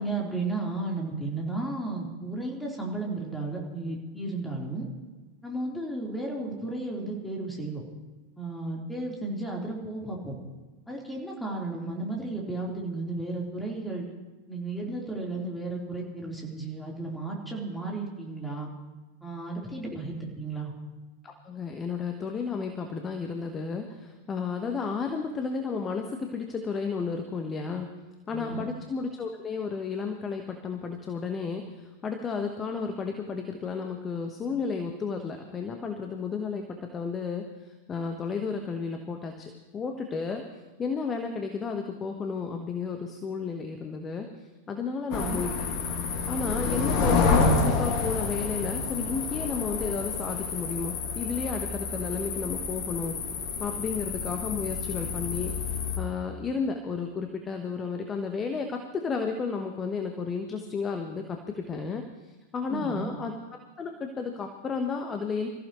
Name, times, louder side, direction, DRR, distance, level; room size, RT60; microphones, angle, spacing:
voice 1, 0.0-4.9 5.4-7.8 8.4-10.3 10.9-14.0 14.5-18.7 19.2-20.7 28.3-28.7 45.2-45.5 62.7-63.1, right 2 dB, 5° left, -2 dB, 3.9 m, -34 dB
voice 2, 21.2-27.9 28.3-40.4 40.8-45.7 46.3-53.2 53.6-55.7 56.0-63.3 63.8-65.5, left 5 dB, 20° left, 5 dB, 1.3 m, -32 dB
sound 1, 45.1-56.0, left 4 dB, 45° left, 2.1 m, -29 dB
26.5 x 14.5 x 3.2 m, 1.2 s
figure-of-eight pair, 90°, 0 cm